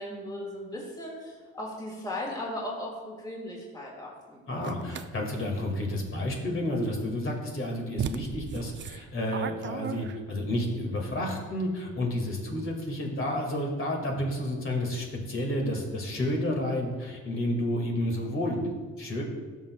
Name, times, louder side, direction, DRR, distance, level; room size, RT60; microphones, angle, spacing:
voice 1, 0.0-4.4, left 1 dB, 15° left, -4 dB, 2.4 m, -37 dB
voice 2, 4.5-19.2, left 1 dB, 45° left, 0 dB, 2.2 m, -30 dB
sound 1, 4.6-5.1 7.3-7.4 8.0-10.5, right 7 dB, 40° right, 0.4 m, -35 dB
12.5 x 6.3 x 2.4 m, 1.4 s
cardioid pair, 90°, 30 cm